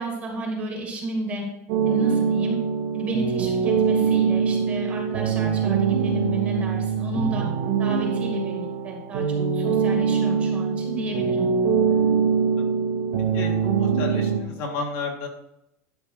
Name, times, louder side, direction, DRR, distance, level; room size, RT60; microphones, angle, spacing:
voice 1, 0.0-1.5 1.9-2.6 2.9-7.5 7.8-11.5, right 1 dB, 20° right, -1 dB, 2.1 m, -32 dB
sound 1, 1.7-14.4, right 6 dB, 80° right, 1.8 m, -23 dB
voice 2, 13.3-15.3, left 4 dB, 45° left, 1 dB, 1.9 m, -32 dB
11.5 x 5.7 x 4.8 m, 0.83 s
supercardioid pair, 180°, 8 cm